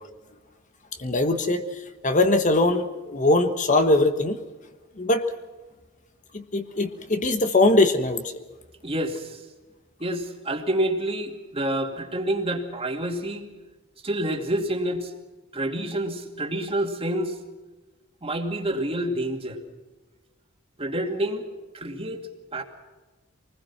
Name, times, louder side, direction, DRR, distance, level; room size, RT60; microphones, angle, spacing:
voice 1, 1.0-1.6 2.0-4.4 5.0-5.2 6.3-8.4, left 2 dB, 35° left, 7 dB, 1.3 m, -21 dB
voice 2, 8.8-9.4 10.0-13.5 14.0-15.1 15.5-17.4 18.2-19.6 20.8-21.5 21.7-22.6, right 1 dB, 30° right, 4 dB, 2.5 m, -28 dB
25.0 x 20.0 x 6.0 m, 1.2 s
head